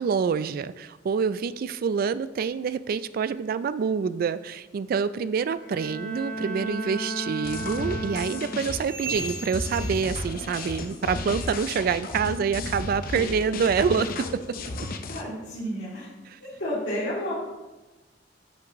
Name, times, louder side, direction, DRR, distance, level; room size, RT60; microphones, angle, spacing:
voice 1, 0.0-14.1 16.3-16.4, right 6 dB, 50° right, 14 dB, 0.3 m, -26 dB
Bowed string instrument, 5.6-9.0, right 2 dB, 10° left, 2.7 m, -34 dB
sound 1, 7.4-15.2, left 2 dB, 50° left, 0.6 m, -34 dB
sound 2, 8.8-11.0 11.3-11.7 12.1-12.3 12.9-13.1 13.8-13.9 14.6-14.7, right 4 dB, 30° right, 1.3 m, -39 dB
voice 2, 15.1-16.1 16.4-17.3, equal, 80° left, -12 dB, 2.7 m, -31 dB
9.7 x 5.9 x 3.0 m, 1.1 s
head